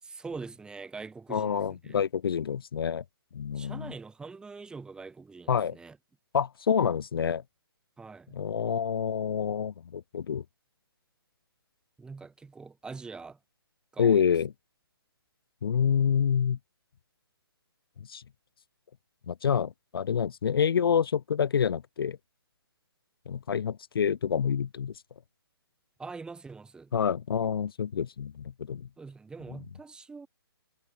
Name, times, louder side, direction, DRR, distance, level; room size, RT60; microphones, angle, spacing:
voice 1, 0.0-2.0 3.5-6.0 8.0-8.4 12.0-13.4 13.9-14.3 26.0-26.9 29.0-30.3, right 4 dB, 5° right, 3.3 m, -43 dB
voice 2, 1.3-3.0 3.3-3.9 5.5-5.8 6.3-7.4 8.3-10.4 14.0-14.5 15.6-16.6 18.1-18.2 19.3-22.2 23.3-24.9 26.9-28.9, left 7 dB, 65° left, 0.5 m, -27 dB
figure-of-eight pair, 140°, 13 cm